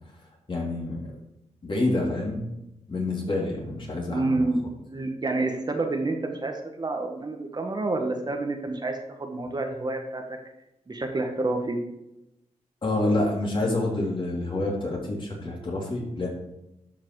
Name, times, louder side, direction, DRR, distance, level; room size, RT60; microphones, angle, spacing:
voice 1, 0.5-1.0 1.6-2.4 2.9-4.5 12.8-16.3, left 2 dB, 45° left, -2 dB, 3.4 m, -27 dB
voice 2, 4.1-10.2 10.9-11.8, right 2 dB, 35° right, 3 dB, 1.4 m, -28 dB
12.0 x 5.8 x 4.8 m, 0.90 s
wide cardioid pair, 95°, 12 cm